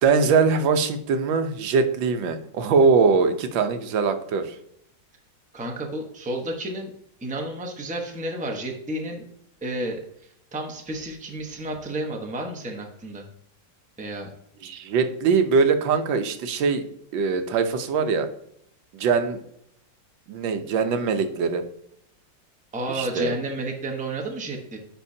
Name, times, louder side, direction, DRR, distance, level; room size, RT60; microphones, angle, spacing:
voice 1, 0.0-4.5 14.6-16.8 17.1-18.3 18.9-19.4 20.3-21.6 22.9-23.4, right 5 dB, 85° right, 8 dB, 1.5 m, -22 dB
voice 2, 5.5-6.9 7.2-9.2 9.6-13.2 14.0-14.3 22.7-24.8, right 1 dB, 5° right, 1 dB, 0.6 m, -31 dB
10.0 x 4.1 x 2.7 m, 0.70 s
omnidirectional pair, 2.0 m